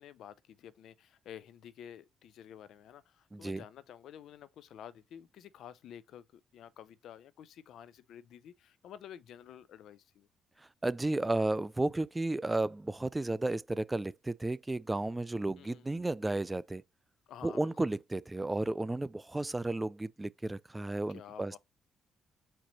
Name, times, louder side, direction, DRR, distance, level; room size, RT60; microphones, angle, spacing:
voice 1, 0.0-10.3 15.6-15.9 17.3-17.9 21.1-21.6, left 9 dB, 75° left, 0.5 m, -51 dB
voice 2, 3.3-3.6 10.8-16.8 17.4-21.6, right 2 dB, 15° right, 0.3 m, -33 dB
4.4 x 2.9 x 4.0 m
cardioid pair, 90°, 0 cm